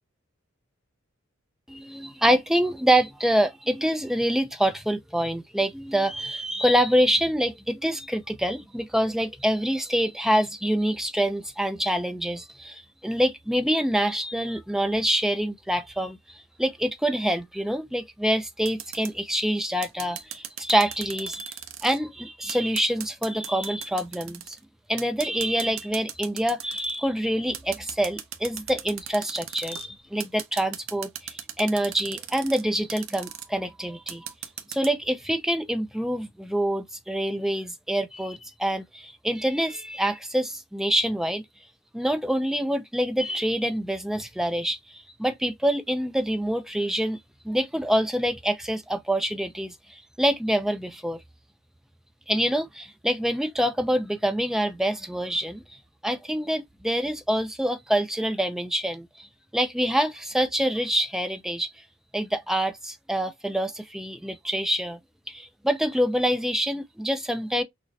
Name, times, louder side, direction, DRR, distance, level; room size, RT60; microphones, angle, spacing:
voice 1, 1.7-24.6 24.9-34.3 34.7-41.4 41.9-47.2 47.4-51.2 52.3-59.3 59.5-61.7 62.1-65.0 65.3-67.6, equal, ahead, 0.4 m, -26 dB
sound 1, 18.7-19.1 19.8-22.0 22.5-24.6 25.0-27.0 27.5-29.9 30.2-32.6 32.9-33.5 34.1-34.9, right 10 dB, 75° right, 0.6 m, -37 dB
6.2 x 2.1 x 2.7 m
head